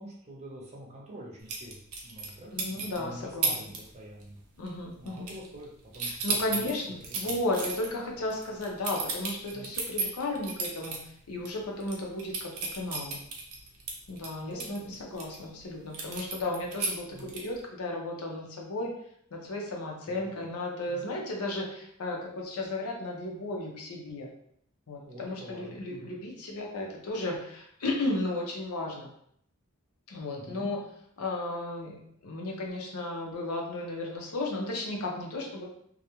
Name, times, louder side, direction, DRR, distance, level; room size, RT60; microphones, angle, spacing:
voice 1, 0.0-4.4 5.0-7.4 9.5-9.7 14.4-14.9 17.1-17.4 20.1-20.3 20.9-21.1 25.0-26.1 30.3-30.7, equal, 30° right, -3 dB, 0.6 m, -46 dB
sound 1, 1.5-2.3 2.6-3.0 3.4-3.8 4.1-4.4 4.7-5.7 5.9-11.0 11.4-11.5 11.8-15.4 15.9-17.6, right 4 dB, 90° right, 0.6 m, -33 dB
voice 2, 2.5-3.5 4.6-5.2 6.2-11.0 11.3-13.2 14.1-18.9 19.3-24.3 24.9-29.1 30.1-30.8 31.2-32.0 32.2-35.7, left 2 dB, 80° left, 0 dB, 0.6 m, -34 dB
2.3 x 2.1 x 2.9 m, 0.68 s
head